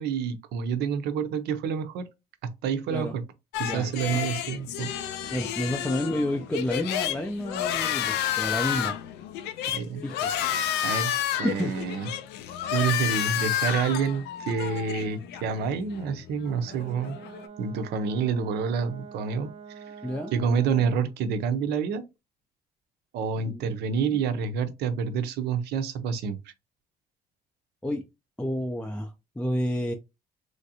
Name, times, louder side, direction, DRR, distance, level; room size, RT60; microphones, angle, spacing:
voice 1, 0.0-2.1 2.4-3.2 3.6-4.9 9.7-10.0 10.8-11.1 11.4-12.1 12.7-17.2 17.6-19.5 19.9-20.0 20.3-22.0 23.1-26.4, right 6 dB, 80° right, 0.6 m, -28 dB
sound 1, 3.5-17.5, left 10 dB, 80° left, 0.5 m, -31 dB
voice 2, 5.3-9.0 10.0-10.3 11.4-11.7 20.0-20.3 23.4-23.6 23.9-24.2 27.8-28.0 28.4-29.9, left 1 dB, 5° left, 0.4 m, -30 dB
Brass instrument, 16.6-21.1, right 6 dB, 40° right, 0.6 m, -45 dB
3.2 x 2.6 x 2.7 m
cardioid pair, 110°, 17 cm